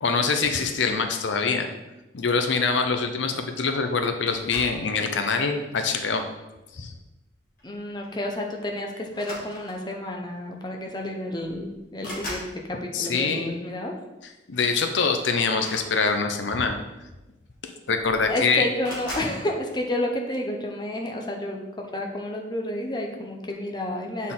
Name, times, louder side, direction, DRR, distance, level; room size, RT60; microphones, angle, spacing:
voice 1, 0.0-1.7 2.1-6.2 6.7-6.9 12.9-13.6 14.5-16.8 17.6-18.6 24.2-24.3, left 4 dB, 85° left, 6 dB, 0.6 m, -24 dB
sound 1, 4.3-4.9 5.8-6.1 7.6-7.7 8.0-8.2 9.1-10.0 11.0-11.1 11.4-12.6 15.5-16.6 17.5-17.6 17.8-18.3 18.8-19.4, left 1 dB, 50° left, 1.9 m, -39 dB
voice 2, 7.6-14.0 18.2-24.3, left 1 dB, 25° left, 1 dB, 0.7 m, -30 dB
7.5 x 4.2 x 3.7 m, 1.0 s
head